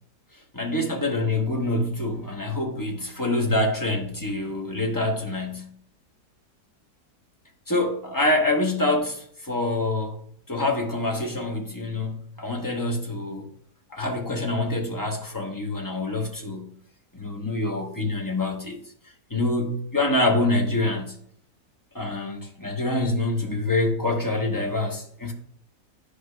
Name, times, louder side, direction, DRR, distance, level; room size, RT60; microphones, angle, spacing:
voice 1, 0.5-5.7 7.7-13.5 13.9-16.7 17.1-18.8 19.3-21.2 21.9-25.3, left 2 dB, 15° left, 0.7 m, -26 dB
12.5 x 4.9 x 2.2 m
omnidirectional pair, 1.7 m